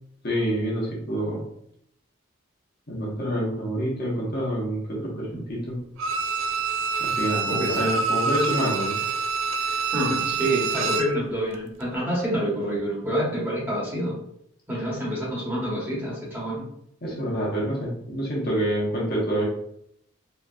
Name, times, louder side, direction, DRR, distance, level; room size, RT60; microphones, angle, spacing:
voice 1, 0.2-1.4 2.9-5.8 7.0-9.1 9.6-9.9 17.0-19.4, right 1 dB, 45° left, -4 dB, 1.1 m, -27 dB
Bowed string instrument, 6.0-11.2 11.5-11.6, right 5 dB, 70° right, 0.4 m, -26 dB
voice 2, 9.9-14.2 14.7-16.7, equal, 10° right, -7 dB, 1.2 m, -27 dB
4.1 x 2.9 x 2.5 m, 0.73 s
head